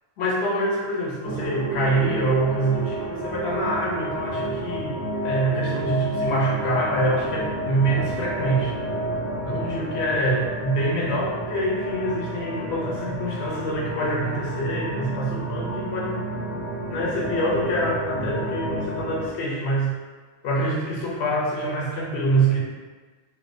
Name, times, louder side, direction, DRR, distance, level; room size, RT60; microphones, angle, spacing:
voice 1, 0.2-8.7 9.4-16.3 16.9-20.0 20.4-22.6, right 1 dB, 85° left, -3 dB, 0.9 m, -25 dB
sound 1, 1.2-19.3, right 1 dB, 65° right, 0.7 m, -30 dB
2.4 x 2.1 x 2.5 m, 1.4 s
omnidirectional pair, 1.1 m